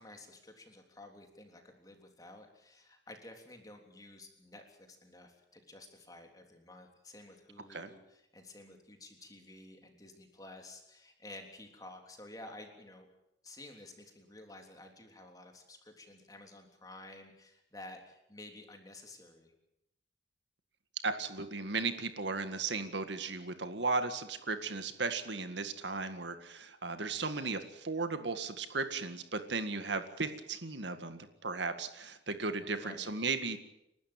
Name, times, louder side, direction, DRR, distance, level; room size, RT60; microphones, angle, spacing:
voice 1, 0.0-13.1 13.4-19.5 32.7-33.1, left 2 dB, 20° left, 4 dB, 3.4 m, -52 dB
voice 2, 21.0-33.6, right 4 dB, 75° right, 9 dB, 1.9 m, -36 dB
30.0 x 12.5 x 9.0 m, 0.86 s
head